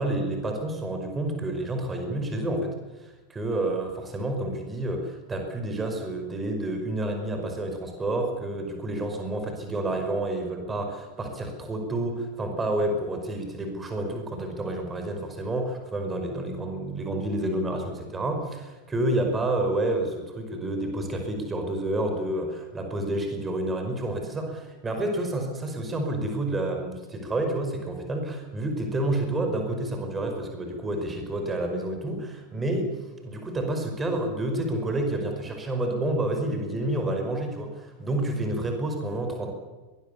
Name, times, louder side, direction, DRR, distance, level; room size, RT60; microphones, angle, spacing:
voice 1, 0.0-32.9 33.2-39.5, right 1 dB, 15° right, 4 dB, 5.3 m, -29 dB
23.0 x 20.5 x 7.1 m, 1.2 s
figure-of-eight pair, 90°, 0 cm